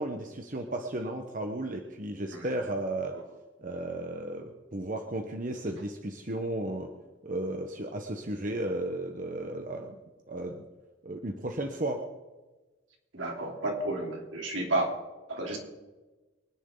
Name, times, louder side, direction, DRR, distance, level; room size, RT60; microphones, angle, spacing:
voice 1, 0.0-3.2 3.6-6.9 7.2-9.9 10.3-10.6 11.0-12.1, right 1 dB, 40° right, 3 dB, 1.1 m, -34 dB
voice 2, 13.1-14.9 15.3-15.6, right 2 dB, 75° right, 0 dB, 3.4 m, -31 dB
24.5 x 10.0 x 3.9 m, 1.2 s
head